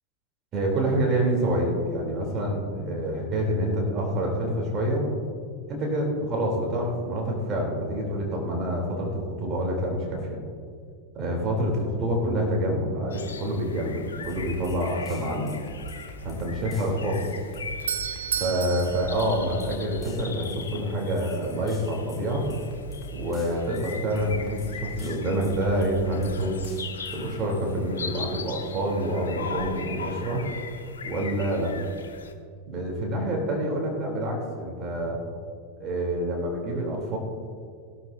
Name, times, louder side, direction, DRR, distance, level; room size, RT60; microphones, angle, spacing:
voice 1, 0.5-5.0 5.7-10.4 11.1-15.6 16.2-17.3 18.4-22.5 23.1-26.6 27.1-30.4 31.0-31.7 32.7-35.2 35.8-37.2, right 1 dB, 30° right, -1 dB, 3.3 m, -27 dB
sound 1, 13.1-32.3, left 5 dB, 70° left, 0.8 m, -40 dB
sound 2, 14.2-27.4, right 1 dB, 10° left, 3.0 m, -44 dB
Doorbell, 17.4-20.3, right 8 dB, 65° right, 0.4 m, -33 dB
18.0 x 12.5 x 2.7 m, 2.2 s
figure-of-eight pair, 90°, 0 cm